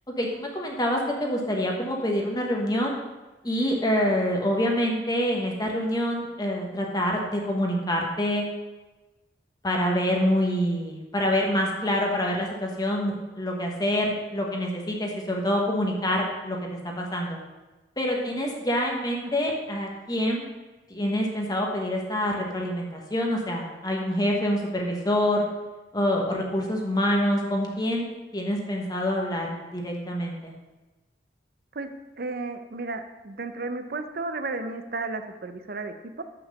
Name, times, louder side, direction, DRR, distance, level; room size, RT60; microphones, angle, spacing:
voice 1, 0.2-3.0 3.4-8.4 9.6-16.6 16.8-17.4 18.0-20.5 20.9-25.5 25.9-28.1 28.3-30.5, equal, 20° left, 0 dB, 1.2 m, -26 dB
voice 2, 19.2-19.6 31.7-36.2, right 3 dB, 55° right, 9 dB, 0.7 m, -34 dB
7.2 x 5.8 x 6.5 m, 1.1 s
head